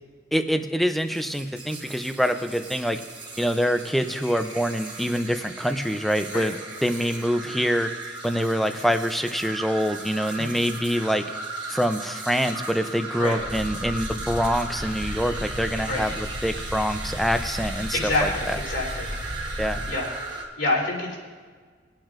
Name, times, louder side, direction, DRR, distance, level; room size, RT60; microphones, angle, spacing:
voice 1, 0.3-3.0 3.4-6.6 6.8-7.9 8.2-11.2 11.7-18.3 19.6-19.8, equal, ahead, 8 dB, 0.5 m, -25 dB
sound 1, 1.0-20.5, right 3 dB, 25° right, 1.3 m, -37 dB
voice 2, 10.4-10.7 13.2-13.4 15.9-16.1 17.9-19.1 19.9-20.1 20.6-21.2, left 2 dB, 80° left, -5 dB, 3.2 m, -27 dB
sound 2, 13.4-19.9, equal, 65° right, 1.8 m, -35 dB
22.0 x 8.9 x 2.5 m, 1.5 s
head